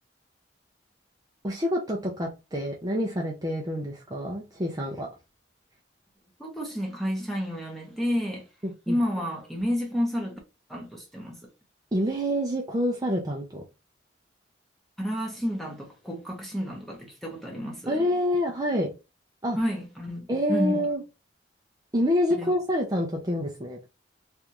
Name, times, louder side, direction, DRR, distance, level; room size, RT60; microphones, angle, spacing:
voice 1, 1.4-5.1 8.6-9.0 11.9-13.6 17.9-18.9 19.4-19.6 20.3-21.0 21.9-23.8, equal, 20° right, 0.6 m, -27 dB
voice 2, 6.4-8.4 8.9-10.4 10.7-11.5 15.0-18.1 19.6-20.9 22.4-22.5, equal, ahead, 0.9 m, -30 dB
3.3 x 2.5 x 2.9 m
head